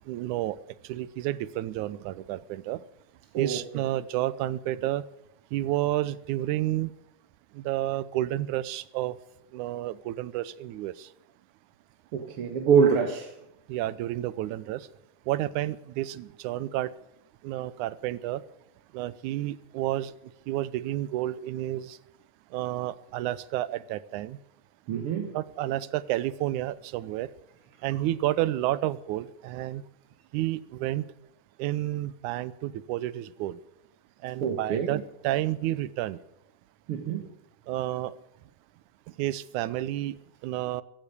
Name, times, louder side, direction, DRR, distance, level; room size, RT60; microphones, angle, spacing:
voice 1, 0.1-0.6 0.9-2.8 3.4-5.0 5.5-6.9 7.6-9.1 9.5-11.1 13.7-14.8 15.3-16.9 17.4-18.4 18.9-20.1 20.5-22.0 22.5-24.4 25.3-27.3 27.8-29.8 30.3-31.0 31.6-33.6 34.2-36.2 37.7-38.1 39.2-40.1 40.4-40.8, right 14 dB, 80° right, 2.2 m, -30 dB
voice 2, 3.3-3.9 12.1-13.4 24.9-25.4 34.4-35.0 36.9-37.3, right 6 dB, 55° right, 1.9 m, -25 dB
16.0 x 13.5 x 6.7 m
omnidirectional pair, 3.5 m